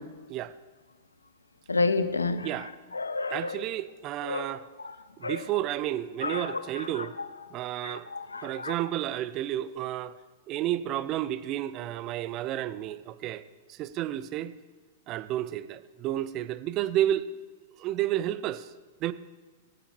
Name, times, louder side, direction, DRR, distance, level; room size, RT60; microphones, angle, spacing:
voice 1, 1.7-2.5 2.9-3.6 4.2-4.5 4.8-4.9 5.2-5.4 6.2-7.3 7.8-8.7, left 3 dB, 85° left, 0.7 m, -30 dB
voice 2, 3.3-4.7 5.2-7.1 7.5-8.1 8.4-10.1 10.5-13.4 13.7-14.5 15.1-17.3 17.8-18.7 19.0-19.1, right 13 dB, 35° right, 0.4 m, -31 dB
15.0 x 9.1 x 3.1 m
figure-of-eight pair, 100°, 0 cm